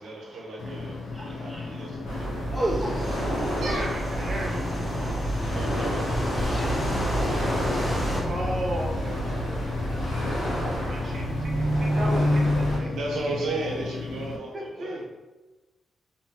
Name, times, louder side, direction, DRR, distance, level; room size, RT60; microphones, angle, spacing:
voice 1, 0.0-2.6 3.6-4.0 5.5-7.8 12.9-15.0, right 2 dB, 85° right, -1 dB, 0.7 m, -36 dB
sound 1, 0.6-14.4, left 4 dB, 75° left, 0.4 m, -35 dB
voice 2, 1.1-3.6 4.9-5.6 6.3-8.3 9.4-11.1, right 1 dB, ahead, -3 dB, 0.4 m, -37 dB
sound 2, 2.0-12.8, equal, 90° left, 1.1 m, -28 dB
sound 3, 3.0-8.2, equal, 30° left, 1.0 m, -34 dB
voice 3, 3.6-4.6 8.3-10.1 10.8-12.9 14.5-15.0, equal, 40° right, -1 dB, 0.7 m, -35 dB
2.7 x 2.6 x 2.7 m, 1.1 s
cardioid pair, 85°, 0 cm